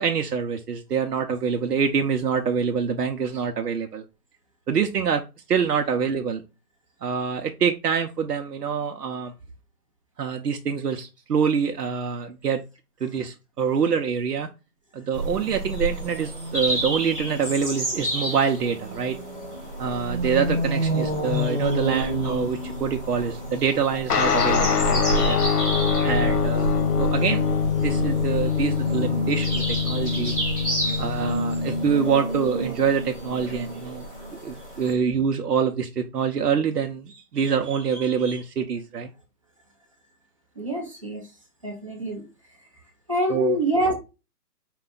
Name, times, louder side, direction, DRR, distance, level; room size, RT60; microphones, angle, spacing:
voice 1, 0.0-4.0 4.7-5.2 5.5-6.4 7.0-9.3 10.2-12.6 13.0-14.5 14.9-19.2 19.8-25.4 26.0-27.4 27.8-30.3 31.0-34.1 34.4-39.1 43.3-43.6, right 6 dB, 80° right, 5 dB, 0.8 m, -25 dB
sound 1, 15.1-34.9, right 1 dB, 5° left, 0.9 m, -29 dB
sound 2, 24.1-31.9, left 7 dB, 75° left, 0.9 m, -24 dB
voice 2, 40.6-41.2 41.6-42.2 43.1-43.9, right 1 dB, 20° right, -1 dB, 0.7 m, -25 dB
4.8 x 2.3 x 3.8 m, 0.28 s
hypercardioid pair, 165°, 47 cm